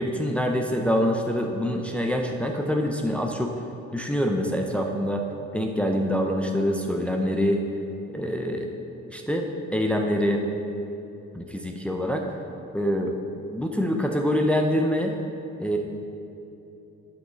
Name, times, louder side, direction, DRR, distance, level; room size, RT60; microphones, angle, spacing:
voice 1, 0.0-3.5 3.9-5.2 5.5-7.6 8.1-8.7 9.1-9.5 9.7-10.4 11.3-12.3 12.7-13.1 13.5-15.1 15.6-15.8, equal, 5° left, 2 dB, 0.7 m, -25 dB
8.7 x 8.4 x 3.9 m, 2.9 s
cardioid pair, 90°, 30 cm